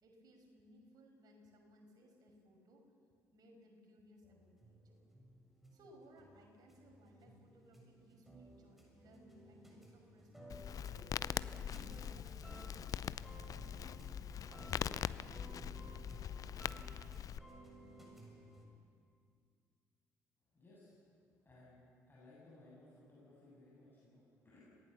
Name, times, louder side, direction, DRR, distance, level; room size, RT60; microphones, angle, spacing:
voice 1, 0.0-2.9 3.3-5.0 5.7-11.1 11.7-13.0 13.4-15.5, equal, 50° right, 2 dB, 5.6 m, -63 dB
sound 1, 4.2-18.6, right 1 dB, ahead, 7.1 m, -57 dB
Crackle, 10.5-17.4, left 9 dB, 40° left, 0.6 m, -42 dB
voice 2, 20.5-21.1 21.4-24.6, left 2 dB, 25° left, -7 dB, 7.8 m, -61 dB
27.0 x 18.0 x 7.0 m, 2.3 s
figure-of-eight pair, 50°, 9 cm